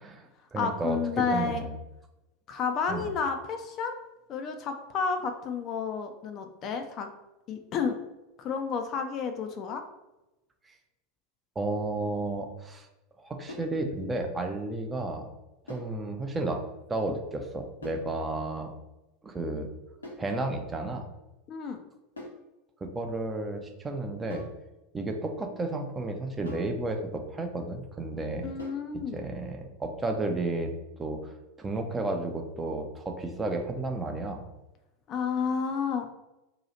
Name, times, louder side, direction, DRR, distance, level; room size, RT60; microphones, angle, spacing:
voice 1, 0.0-1.8 2.9-3.1 11.6-12.9 13.2-15.3 15.7-16.6 16.9-18.7 19.2-19.7 20.2-21.0 22.8-24.5 24.9-28.5 29.1-34.4, right 2 dB, 15° right, 4 dB, 0.5 m, -32 dB
voice 2, 0.6-1.7 2.5-3.9 4.3-7.1 7.5-8.0 8.4-9.8 21.5-21.8 28.4-29.2 35.1-36.1, left 5 dB, 35° left, 6 dB, 0.4 m, -31 dB
sound 1, 13.5-13.8 15.7-16.0 17.8-18.1 20.0-20.3 22.2-22.5 24.3-24.6 26.5-26.8 28.6-28.9, left 1 dB, 80° left, 0.8 m, -43 dB
2.9 x 2.3 x 4.0 m, 0.97 s
figure-of-eight pair, 80°, 0 cm